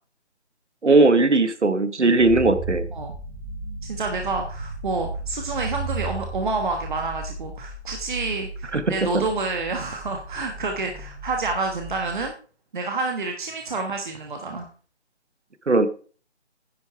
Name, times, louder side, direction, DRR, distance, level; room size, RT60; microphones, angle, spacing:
voice 1, 0.8-2.9 8.7-9.3 15.7-15.9, right 3 dB, 90° right, 13 dB, 1.2 m, -18 dB
sound 1, 2.2-12.3, right 2 dB, 25° right, 2.3 m, -35 dB
voice 2, 3.9-12.4 12.7-14.7, right 3 dB, 45° right, 3 dB, 1.3 m, -28 dB
10.5 x 6.8 x 4.5 m, 0.40 s
figure-of-eight pair, 155°, 34 cm